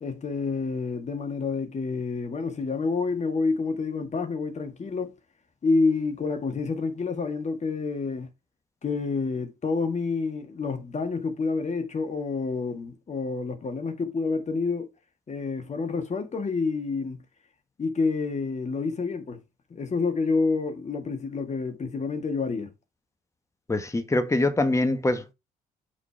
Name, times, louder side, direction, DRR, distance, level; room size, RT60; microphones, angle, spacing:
voice 1, 0.0-5.2 5.6-8.3 8.8-14.9 15.3-17.2 17.8-19.4 19.7-22.7, left 4 dB, 35° left, 1.9 m, -28 dB
voice 2, 23.7-25.3, left 2 dB, 15° left, 1.2 m, -24 dB
5.9 x 4.1 x 4.4 m
figure-of-eight pair, 45°, 20 cm